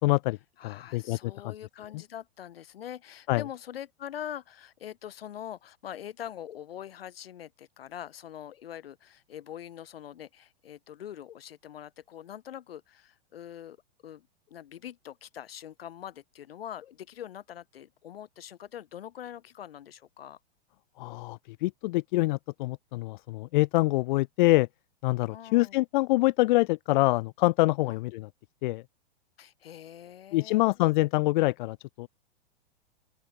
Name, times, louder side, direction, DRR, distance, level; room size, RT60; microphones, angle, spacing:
voice 1, 0.0-0.4 0.6-1.5 1.9-2.0 3.3-3.4 21.0-24.7 25.0-28.3 28.6-28.8 30.3-32.1, left 20 dB, 50° left, 1.7 m, -25 dB
voice 2, 0.6-13.8 14.0-20.4 25.3-25.8 27.9-28.0 29.4-30.7, left 10 dB, 65° left, 7.0 m, -43 dB
open air
figure-of-eight pair, 105°, 31 cm